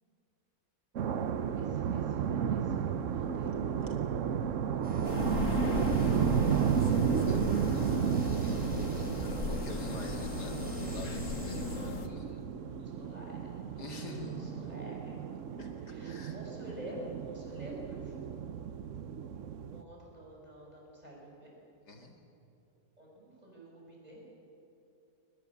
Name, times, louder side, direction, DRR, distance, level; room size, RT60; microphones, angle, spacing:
sound 1, 1.0-19.8, right 7 dB, 55° right, 1.0 m, -33 dB
voice 1, 1.6-3.5 5.5-6.7 11.7-12.0 12.3-15.2 15.8-18.3 19.7-21.5 23.0-24.2, right 1 dB, 25° right, -3 dB, 6.4 m, -49 dB
sound 2, 4.8-11.8, left 1 dB, 5° right, 4.4 m, -45 dB
sound 3, 5.0-12.1, left 4 dB, 50° left, 1.6 m, -37 dB
voice 2, 7.2-12.4 13.8-15.3 15.6-16.4 21.9-22.2, left 2 dB, 75° left, 3 dB, 2.7 m, -48 dB
22.5 x 20.5 x 8.5 m, 2.9 s
omnidirectional pair, 1.8 m